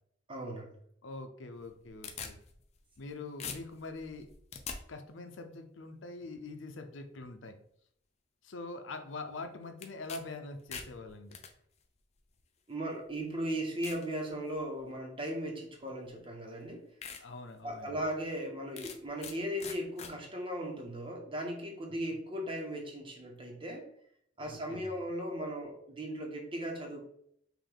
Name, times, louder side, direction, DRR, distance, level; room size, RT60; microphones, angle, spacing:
voice 1, 0.3-0.8 12.7-16.9 17.1-17.2 17.6-23.9 24.4-27.0, equal, 30° right, 1 dB, 1.1 m, -37 dB
voice 2, 1.0-2.4 3.0-4.3 4.9-7.6 8.4-11.4 17.2-18.0 24.4-24.9, left 3 dB, 90° left, 7 dB, 0.6 m, -44 dB
sound 1, 1.6-3.1 3.4-4.8 9.8-10.2 10.5-11.5 12.4-12.5 13.1-13.2 13.8-14.1 14.6-14.9 16.1-16.2 16.6-16.7 17.0-17.2 17.6-17.7 18.8-19.3 19.6-20.1, left 6 dB, 35° left, 0.5 m, -43 dB
5.8 x 2.6 x 3.5 m, 0.69 s
head